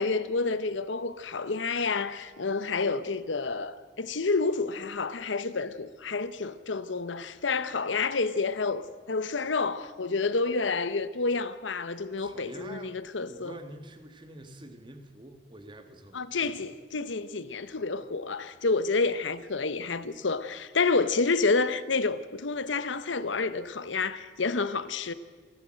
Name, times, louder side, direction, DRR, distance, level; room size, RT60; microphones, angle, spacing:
voice 1, 0.0-13.5 16.1-25.1, left 4 dB, 80° left, 0.9 m, -29 dB
voice 2, 12.2-13.0 13.3-16.6, right 1 dB, 25° right, 1.7 m, -46 dB
28.0 x 12.0 x 7.7 m
head